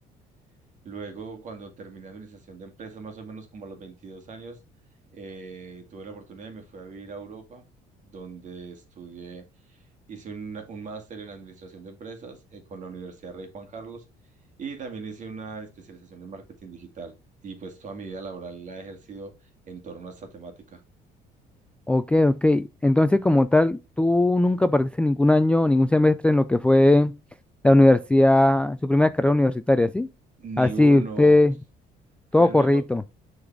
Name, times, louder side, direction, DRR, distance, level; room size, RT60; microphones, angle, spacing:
voice 1, 0.8-4.6 5.1-7.7 8.0-14.0 14.6-17.2 17.4-19.3 19.7-20.8 30.4-31.4 32.4-32.8, right 4 dB, 45° right, 2.1 m, -39 dB
voice 2, 21.9-27.1 27.6-30.1 30.6-31.5 32.3-33.0, left 1 dB, 5° left, 0.3 m, -19 dB
6.6 x 4.0 x 4.6 m
cardioid pair, 110°, 17 cm